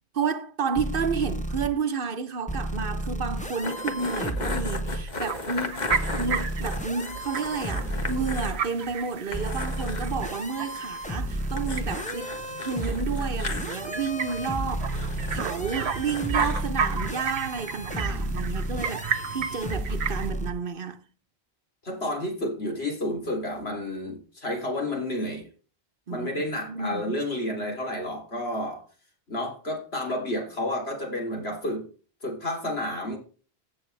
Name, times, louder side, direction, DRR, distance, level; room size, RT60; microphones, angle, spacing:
voice 1, 0.1-5.9 6.2-21.0 26.1-27.1, right 5 dB, 60° right, 1.0 m, -31 dB
sound 1, 0.7-1.7 2.5-5.0 5.9-8.5 9.3-20.5, right 1 dB, 10° left, 1.0 m, -32 dB
sound 2, 3.6-8.6 8.9-9.0 9.3-10.1 11.6-13.8 14.9-16.6, left 3 dB, 45° left, 1.4 m, -36 dB
sound 3, 5.1-20.3, right 6 dB, 85° right, 1.1 m, -34 dB
voice 2, 21.8-25.5 26.1-28.8 29.3-31.9 32.2-33.2, left 1 dB, 75° left, 3.6 m, -30 dB
15.5 x 6.8 x 3.3 m
omnidirectional pair, 1.1 m